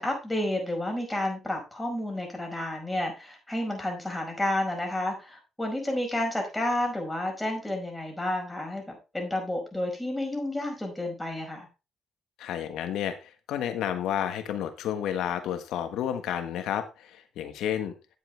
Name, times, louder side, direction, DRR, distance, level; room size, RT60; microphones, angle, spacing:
voice 1, 0.0-11.7, left 1 dB, 10° left, 1 dB, 4.9 m, -31 dB
voice 2, 12.4-17.9, left 10 dB, 85° left, 9 dB, 1.4 m, -31 dB
10.0 x 7.7 x 3.3 m, 0.29 s
cardioid pair, 90°, 0 cm